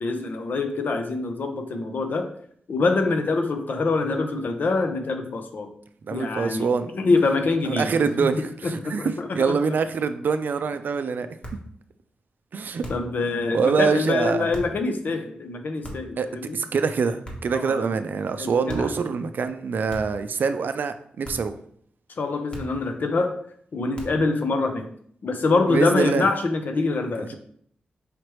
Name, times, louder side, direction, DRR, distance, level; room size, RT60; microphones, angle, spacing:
voice 1, 0.0-2.3 2.7-5.7 6.1-7.9 8.2-8.3 8.6-9.3 12.9-16.6 17.5-17.9 18.4-18.9 22.2-23.4 23.7-24.9 25.2-27.4, left 3 dB, 65° left, 6 dB, 0.6 m, -25 dB
voice 2, 6.0-6.9 7.7-11.3 12.5-12.8 13.5-14.5 16.2-16.3 16.5-21.5 25.7-26.3 27.2-27.4, right 5 dB, 65° right, 10 dB, 0.4 m, -25 dB
sound 1, 11.4-11.7 12.8-13.2 14.5-14.8 15.8-16.2 17.2-17.6 18.7-19.0 19.9-20.3 21.2-21.6 22.5-22.9 23.9-24.3, equal, 30° left, 1.2 m, -38 dB
4.9 x 3.2 x 3.0 m, 0.63 s
cardioid pair, 70°, 3 cm